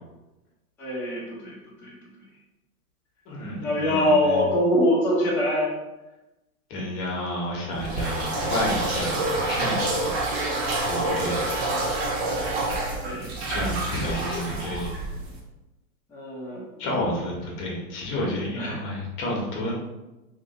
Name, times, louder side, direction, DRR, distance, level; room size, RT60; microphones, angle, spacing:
voice 1, 0.8-1.5 1.8-1.9 3.6-5.7 11.2-11.3 13.0-13.3 13.9-14.6 16.1-16.6 18.6-18.9, left 1 dB, 5° left, -11 dB, 0.7 m, -24 dB
voice 2, 3.3-4.3 6.7-10.1 10.8-11.4 13.5-14.9 16.8-19.7, left 1 dB, 25° left, -2 dB, 1.1 m, -30 dB
sound 1, 7.8-15.4, right 2 dB, 45° right, 0.8 m, -27 dB
2.9 x 2.8 x 4.1 m, 1.0 s
hypercardioid pair, 125°, 45 cm